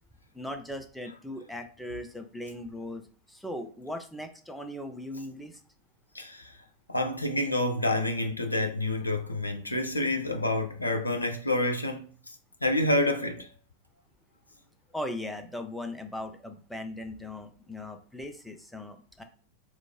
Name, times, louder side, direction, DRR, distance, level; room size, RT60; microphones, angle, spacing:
voice 1, 0.3-5.6 14.9-19.2, left 1 dB, ahead, 0.5 m, -39 dB
voice 2, 6.1-6.5 6.9-12.1 12.6-13.5, left 1 dB, 80° left, 0.4 m, -28 dB
3.1 x 2.5 x 3.4 m
figure-of-eight pair, 90°, 0 cm